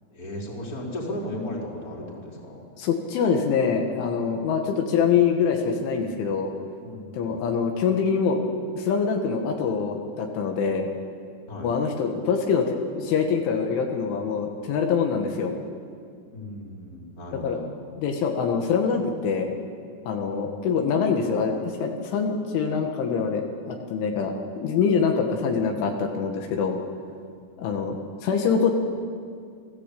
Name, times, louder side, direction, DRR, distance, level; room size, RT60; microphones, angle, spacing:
voice 1, 0.1-2.6 6.8-7.4 11.5-11.7 16.3-17.7 27.4-27.7, left 1 dB, 20° left, -3 dB, 4.3 m, -36 dB
voice 2, 2.8-6.5 7.1-8.4 8.8-10.9 11.6-15.5 17.4-17.6 18.0-19.6 20.1-26.8 27.6-28.7, left 6 dB, 75° left, 2 dB, 4.1 m, -24 dB
28.0 x 17.5 x 8.5 m, 2.2 s
omnidirectional pair, 5.6 m